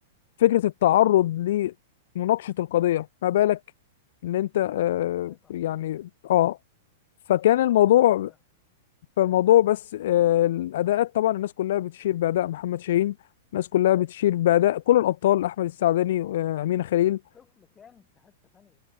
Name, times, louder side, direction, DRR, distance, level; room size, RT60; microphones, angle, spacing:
voice 1, 0.4-1.7 2.2-3.6 4.2-6.6 7.3-8.3 9.2-13.1 13.5-17.2, left 13 dB, 60° left, 0.3 m, -22 dB
voice 2, 5.3-5.6 7.5-8.4 17.3-18.8, left 7 dB, 20° left, 5.8 m, -57 dB
figure-of-eight pair, 100°, 0 cm